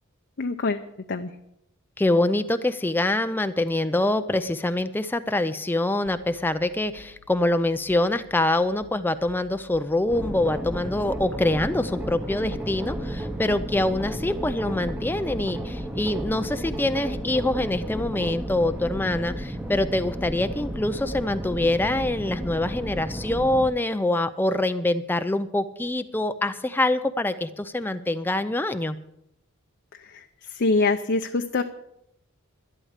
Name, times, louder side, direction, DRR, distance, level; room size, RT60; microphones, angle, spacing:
voice 1, 0.4-0.8 1.1-1.3 30.1-30.2 30.5-31.6, left 3 dB, 50° left, 6 dB, 0.6 m, -24 dB
voice 2, 2.0-29.0, left 1 dB, 10° left, 10 dB, 0.4 m, -25 dB
sound 1, 6.1-19.0, equal, 65° right, 1.3 m, -53 dB
sound 2, 10.1-23.7, equal, 5° right, 0.9 m, -33 dB
12.5 x 11.5 x 6.5 m, 0.80 s
head